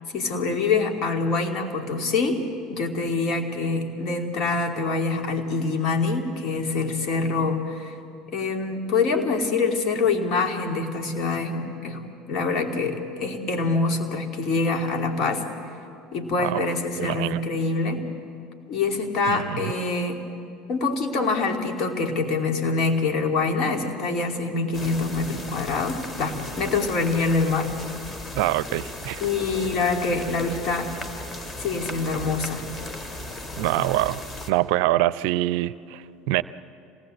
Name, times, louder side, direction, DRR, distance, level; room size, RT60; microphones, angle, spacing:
voice 1, 0.1-7.9 8.3-12.0 12.3-15.5 16.1-18.0 18.7-20.2 20.7-27.7 29.2-30.9 31.6-32.7, left 3 dB, 50° left, 4 dB, 2.8 m, -25 dB
voice 2, 17.0-17.4 19.3-19.6 28.3-29.2 33.6-34.2 34.5-36.4, right 16 dB, 65° right, 17 dB, 0.5 m, -24 dB
sound 1, 24.7-34.5, left 2 dB, 25° left, 2.3 m, -36 dB
26.5 x 18.5 x 7.9 m, 2.6 s
hypercardioid pair, 70°, 0 cm